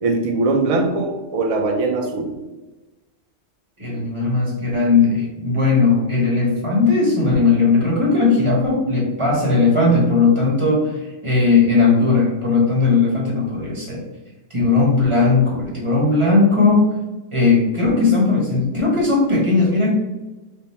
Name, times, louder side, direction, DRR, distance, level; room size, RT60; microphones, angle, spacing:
voice 1, 0.0-2.3, right 3 dB, 60° right, 3 dB, 0.4 m, -21 dB
voice 2, 3.8-11.0 11.2-14.0 14.5-16.9 17.3-19.9, left 3 dB, 25° right, -4 dB, 1.1 m, -17 dB
3.6 x 2.1 x 4.2 m, 1.1 s
omnidirectional pair, 1.3 m